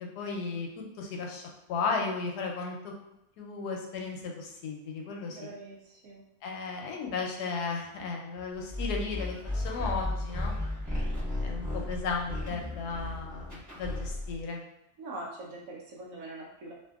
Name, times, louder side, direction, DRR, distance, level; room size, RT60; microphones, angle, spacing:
voice 1, 0.0-0.7 1.0-1.4 1.7-2.9 3.4-5.5 6.4-10.6 11.4-14.6, left 4 dB, 90° left, 1 dB, 1.1 m, -35 dB
voice 2, 5.3-6.2 15.0-16.7, right 2 dB, 70° right, -2 dB, 1.0 m, -43 dB
sound 1, 8.7-14.4, left 1 dB, 15° right, 0.9 m, -34 dB
2.7 x 2.6 x 2.3 m, 0.85 s
omnidirectional pair, 1.7 m